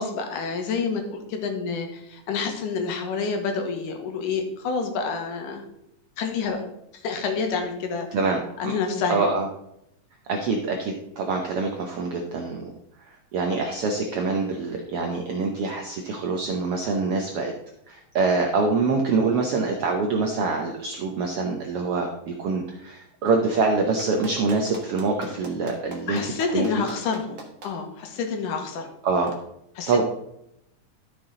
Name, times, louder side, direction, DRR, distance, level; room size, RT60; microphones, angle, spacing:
voice 1, 0.0-5.6 6.2-6.6 6.9-8.1 8.6-9.3 26.1-27.4 27.6-28.9 29.8-30.0, left 5 dB, 80° left, 4 dB, 2.8 m, -28 dB
voice 2, 8.1-8.7 9.1-9.5 10.3-12.7 13.3-17.5 17.9-26.8 29.0-29.3 29.9-30.0, right 4 dB, 75° right, 2 dB, 1.4 m, -25 dB
Clapping, 24.0-27.7 29.2-29.3, right 2 dB, 50° right, 1.6 m, -41 dB
12.5 x 6.0 x 3.8 m, 0.81 s
omnidirectional pair, 3.6 m